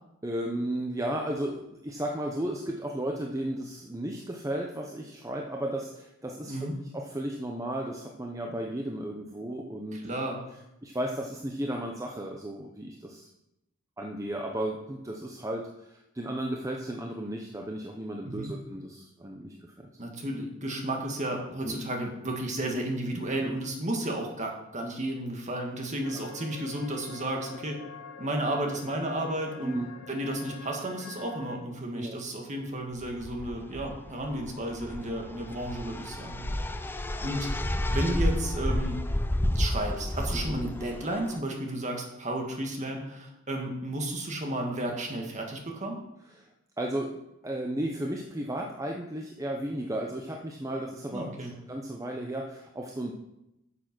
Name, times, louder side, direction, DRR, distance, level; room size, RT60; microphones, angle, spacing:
voice 1, 0.2-6.6 6.9-10.0 10.8-13.3 14.0-19.5 21.6-21.8 26.1-26.2 29.6-29.9 32.0-32.2 46.4-46.5 46.8-47.1 47.4-53.1, right 1 dB, 15° right, 1 dB, 0.8 m, -34 dB
voice 2, 9.9-10.4 18.2-18.5 20.0-27.8 28.2-29.8 30.1-36.5 36.8-36.9 37.2-37.5 37.9-39.0 39.6-46.0 51.1-51.5, right 1 dB, 35° right, 2 dB, 1.8 m, -33 dB
sound 1, 26.0-31.6, left 6 dB, 80° left, 1.0 m, -46 dB
sound 2, 33.0-41.4, left 1 dB, 10° left, 0.5 m, -31 dB
9.6 x 6.9 x 6.1 m, 0.87 s
head